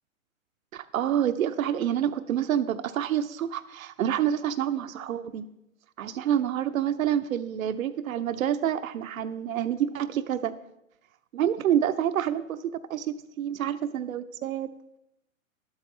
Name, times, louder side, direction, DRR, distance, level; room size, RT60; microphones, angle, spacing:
voice 1, 0.7-5.5 6.0-10.6 11.3-12.6 12.9-14.7, right 10 dB, 85° right, 11 dB, 0.6 m, -28 dB
11.5 x 8.2 x 3.2 m, 0.84 s
hypercardioid pair, 140°, 40 cm